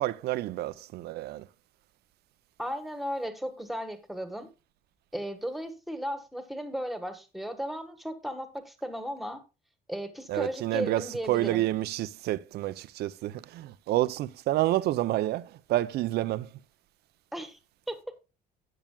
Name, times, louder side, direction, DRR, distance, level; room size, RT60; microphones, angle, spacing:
voice 1, 0.0-1.5 10.3-16.6, right 15 dB, 70° right, 0.6 m, -29 dB
voice 2, 2.6-4.5 5.1-9.4 9.9-11.6 17.3-17.6 17.9-18.2, equal, ahead, 1.5 m, -35 dB
12.5 x 8.8 x 2.3 m
cardioid pair, 110°, 17 cm